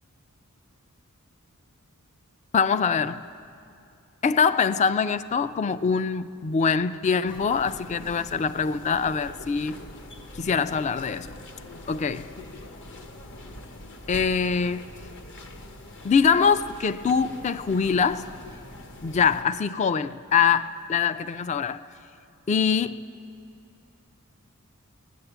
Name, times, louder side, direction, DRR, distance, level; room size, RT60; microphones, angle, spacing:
voice 1, 2.5-3.2 4.2-9.8 10.3-11.4 11.9-12.3 14.1-14.9 16.0-18.3 19.0-21.9 22.5-23.1, left 6 dB, 30° left, 0.3 m, -24 dB
sound 1, 7.2-19.4, left 1 dB, 55° left, 1.0 m, -43 dB
16.5 x 10.5 x 8.0 m
head